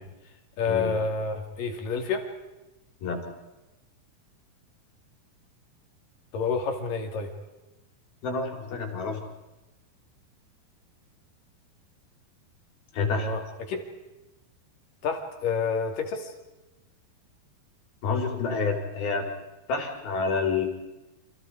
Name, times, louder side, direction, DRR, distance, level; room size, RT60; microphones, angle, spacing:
voice 1, 0.6-2.3 6.3-7.3 13.2-13.9 15.0-16.3, left 5 dB, 65° left, 3 dB, 4.3 m, -29 dB
voice 2, 8.2-9.2 12.9-13.3 18.0-19.3 19.7-20.7, left 4 dB, 85° left, 2 dB, 5.8 m, -28 dB
29.5 x 27.0 x 4.9 m, 1.0 s
omnidirectional pair, 4.2 m